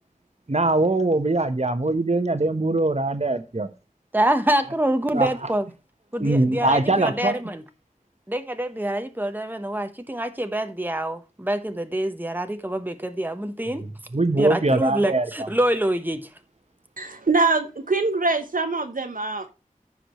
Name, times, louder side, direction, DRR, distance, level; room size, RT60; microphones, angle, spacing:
voice 1, 0.5-3.7 5.1-5.3 6.2-7.3 14.1-15.3, right 2 dB, 50° right, 1.3 m, -22 dB
voice 2, 4.1-5.7 6.1-7.6 8.3-13.8 14.3-16.3, right 1 dB, 15° right, 1.0 m, -26 dB
voice 3, 17.0-19.5, right 3 dB, 75° right, 0.9 m, -23 dB
14.5 x 5.0 x 3.1 m
wide cardioid pair, 40°, 14 cm